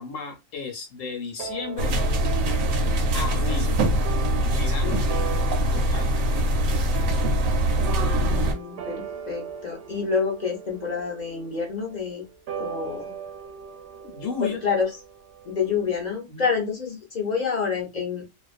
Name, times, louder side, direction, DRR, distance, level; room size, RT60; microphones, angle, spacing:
voice 1, 0.0-2.0 3.1-3.8 4.4-5.1 5.7-6.1 14.0-14.6 16.3-16.5, left 5 dB, 80° left, 3 dB, 0.9 m, -34 dB
sound 1, 1.4-16.1, right 7 dB, 65° right, 0.8 m, -39 dB
sound 2, 1.8-8.5, equal, 85° right, 1.0 m, -23 dB
voice 2, 7.8-12.2 12.6-13.1 14.4-14.9 15.4-18.2, left 5 dB, 50° left, 0 dB, 0.5 m, -28 dB
2.4 x 2.2 x 2.3 m, 0.24 s
omnidirectional pair, 1.4 m